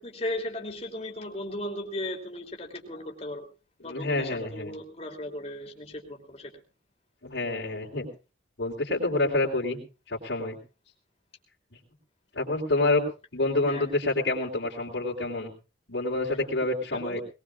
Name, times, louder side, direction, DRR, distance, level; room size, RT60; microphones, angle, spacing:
voice 1, 0.0-3.5 3.8-6.6 13.7-13.9 16.9-17.2, left 1 dB, 35° left, 2 dB, 3.0 m, -36 dB
voice 2, 3.8-4.7 7.2-8.1 8.6-9.8 10.1-10.6 12.3-13.0 13.3-15.5 15.9-17.2, left 2 dB, 80° left, -6 dB, 3.7 m, -27 dB
21.0 x 20.0 x 2.4 m, 0.32 s
head